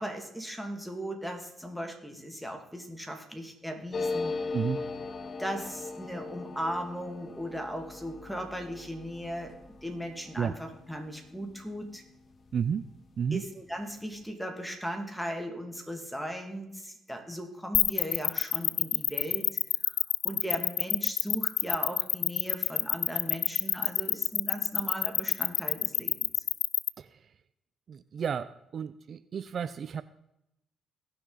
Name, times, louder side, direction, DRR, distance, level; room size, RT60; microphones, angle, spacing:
voice 1, 0.0-4.3 5.4-12.0 13.3-19.6 19.9-20.0 20.2-26.2, equal, ahead, 4 dB, 2.3 m, -37 dB
sound 1, 3.9-13.1 13.4-13.5 13.7-14.2, left 3 dB, 45° left, 1.1 m, -39 dB
voice 2, 12.5-12.8 13.2-13.4 27.0-27.1 27.9-30.0, right 7 dB, 55° right, 14 dB, 0.4 m, -32 dB
sound 2, 17.7-26.9, left 10 dB, 70° left, 0.3 m, -26 dB
18.0 x 6.3 x 4.0 m, 0.83 s
supercardioid pair, 65°, 0 cm